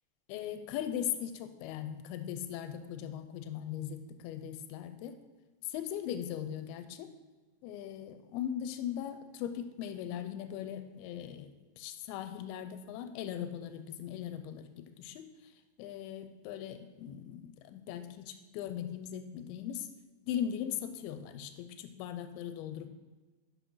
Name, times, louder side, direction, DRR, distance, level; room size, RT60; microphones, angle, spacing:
voice 1, 0.3-5.2 5.6-7.1 7.6-15.3 15.8-19.9 20.3-22.9, left 10 dB, 85° left, 9 dB, 2.5 m, -39 dB
6.2 x 6.0 x 5.5 m, 1.3 s
omnidirectional pair, 4.5 m